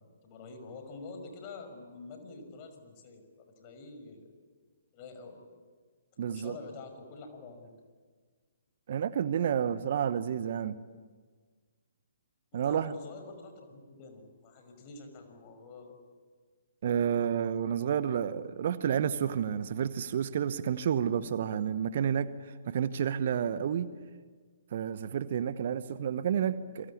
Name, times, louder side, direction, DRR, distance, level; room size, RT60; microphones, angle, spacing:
voice 1, 0.0-4.3 4.9-5.4 6.3-7.7 12.5-16.0, left 3 dB, 30° left, 6 dB, 5.7 m, -47 dB
voice 2, 6.2-6.6 8.9-10.8 12.5-12.9 16.8-23.9 24.7-26.9, right 8 dB, 45° right, 14 dB, 1.0 m, -30 dB
29.5 x 23.0 x 8.6 m, 1.5 s
figure-of-eight pair, 130°, 0 cm